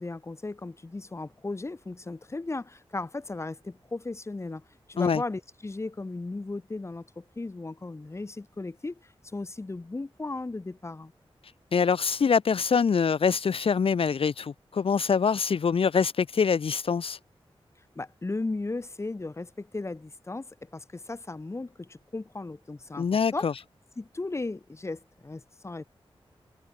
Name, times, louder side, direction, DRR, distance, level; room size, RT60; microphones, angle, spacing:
voice 1, 0.0-4.6 4.9-11.1 18.0-23.5 24.0-25.9, left 3 dB, 25° left, 1.8 m, -36 dB
voice 2, 11.7-17.2 23.0-23.5, left 6 dB, 65° left, 0.8 m, -24 dB
wide cardioid pair, 130°, 10 cm